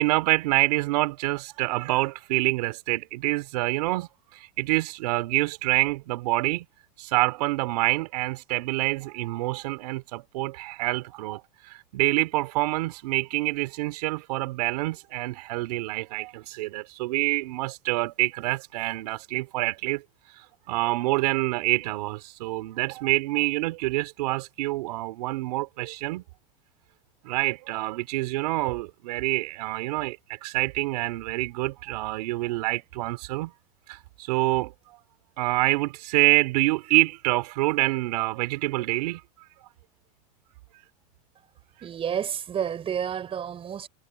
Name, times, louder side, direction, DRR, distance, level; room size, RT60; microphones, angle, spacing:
voice 1, 0.0-6.6 7.0-20.0 20.3-26.2 27.2-33.5 33.9-35.0 35.4-39.2, right 20 dB, 75° right, 4.7 m, -26 dB
voice 2, 41.8-43.9, right 8 dB, 25° right, 4.8 m, -30 dB
supercardioid pair, 130°, 21 cm